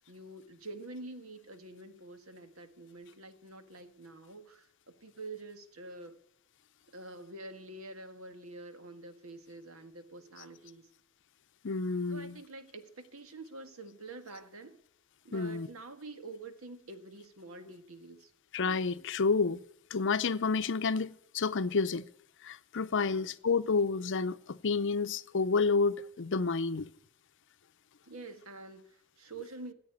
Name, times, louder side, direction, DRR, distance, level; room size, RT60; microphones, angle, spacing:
voice 1, 0.0-4.7 5.0-6.2 6.9-10.9 12.1-14.8 15.2-18.3 22.9-23.4 28.1-29.7, right 2 dB, 75° right, 1.7 m, -47 dB
voice 2, 11.6-12.4 15.3-15.7 18.5-19.6 19.9-22.1 22.4-26.9, left 4 dB, 60° left, 0.6 m, -30 dB
14.5 x 8.6 x 9.4 m
head